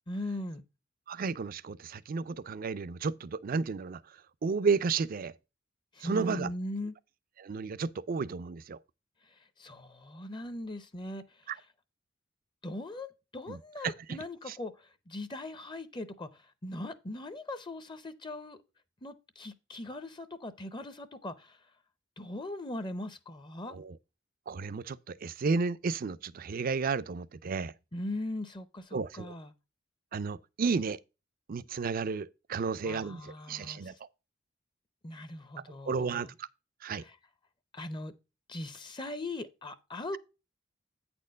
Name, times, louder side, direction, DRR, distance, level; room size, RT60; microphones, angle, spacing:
voice 1, 0.1-0.6 5.9-6.9 9.2-11.5 12.6-18.6 19.0-21.6 22.2-23.8 27.9-29.5 32.8-34.0 35.0-36.3 36.9-37.2 37.7-38.1 38.5-40.2, left 1 dB, 25° left, 0.6 m, -40 dB
voice 2, 1.1-5.3 6.0-6.5 7.4-8.8 11.5-11.6 13.5-13.6 13.8-14.2 14.5-14.6 23.7-24.0 24.5-27.7 28.9-29.3 30.1-31.0 31.5-34.1 35.7-36.5 36.8-37.0, right 4 dB, 45° right, 0.4 m, -33 dB
8.9 x 4.4 x 5.0 m
head